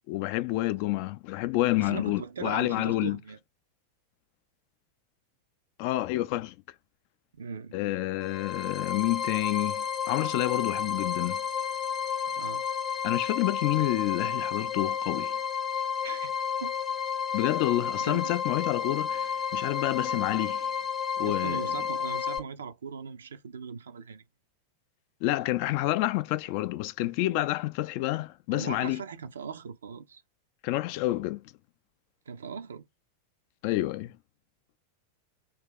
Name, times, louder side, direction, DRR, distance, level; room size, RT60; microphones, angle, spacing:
voice 1, 0.1-3.2 5.8-6.5 7.7-11.4 13.0-15.3 17.3-20.7 21.2-21.6 25.2-29.0 30.6-31.4 33.6-34.1, left 17 dB, 45° left, 0.4 m, -28 dB
voice 2, 1.8-3.4 7.3-7.7 12.3-12.6 16.0-16.3 16.6-16.8 18.0-18.4 21.2-24.2 28.5-30.2 32.3-32.9, right 6 dB, 65° right, 0.5 m, -39 dB
sound 1, 8.2-22.4, left 7 dB, 20° left, 0.7 m, -31 dB
2.9 x 2.9 x 3.6 m
figure-of-eight pair, 90°, 0 cm